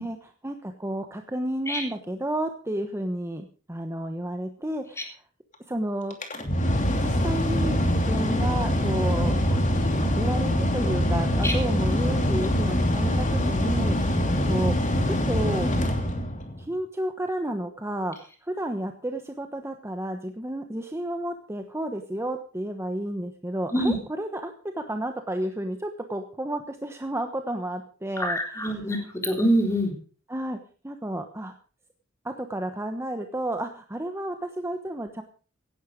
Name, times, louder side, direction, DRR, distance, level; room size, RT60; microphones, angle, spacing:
voice 1, 0.0-5.2 5.7-6.2 6.9-9.6 9.9-15.7 16.6-18.2 18.4-28.9 30.3-30.6 30.8-31.5 32.2-35.2, right 1 dB, 10° right, 6 dB, 1.1 m, -32 dB
Mechanical fan, 6.1-16.6, equal, 35° left, 2.8 m, -24 dB
voice 2, 28.2-29.9, equal, 15° left, 3 dB, 3.8 m, -25 dB
17.0 x 11.0 x 5.1 m, 0.39 s
head